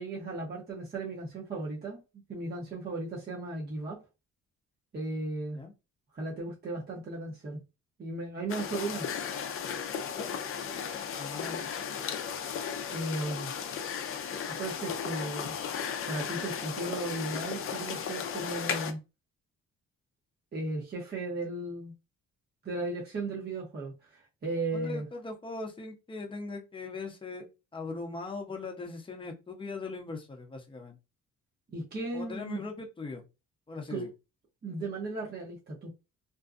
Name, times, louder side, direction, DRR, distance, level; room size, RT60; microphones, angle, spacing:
voice 1, 0.0-2.0 2.3-4.0 4.9-5.6 6.1-7.6 8.0-9.1 12.9-13.5 14.6-15.6 16.1-19.0 20.5-21.9 22.6-25.1 31.7-32.6 33.9-34.1 34.6-35.9, right 2 dB, 35° right, 0.8 m, -36 dB
sound 1, 8.5-18.9, left 7 dB, 45° left, 0.5 m, -35 dB
voice 2, 11.1-11.7 24.7-27.5 27.7-31.0 32.1-33.2 33.7-34.1 34.8-34.9, left 3 dB, 15° left, 0.7 m, -39 dB
2.6 x 2.1 x 2.4 m
cardioid pair, 90°, 30 cm